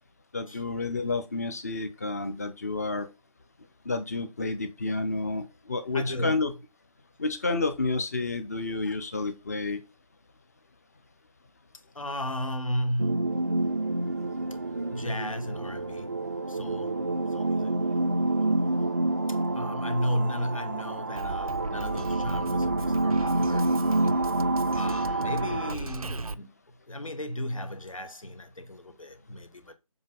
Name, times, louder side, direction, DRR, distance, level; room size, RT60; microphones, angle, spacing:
voice 1, 0.3-3.1 3.8-6.5 7.2-9.8, left 3 dB, 30° left, 0.7 m, -30 dB
voice 2, 5.9-6.4 8.9-9.0 11.9-13.5 14.9-16.1 16.5-17.9 19.5-24.2 24.7-26.5 26.9-29.7, equal, 70° left, 1.3 m, -34 dB
sound 1, 13.0-25.7, right 2 dB, 30° right, 0.4 m, -28 dB
Drum kit, 21.2-26.3, right 3 dB, 85° right, 0.6 m, -37 dB
7.2 x 2.8 x 5.3 m
figure-of-eight pair, 155°, 18 cm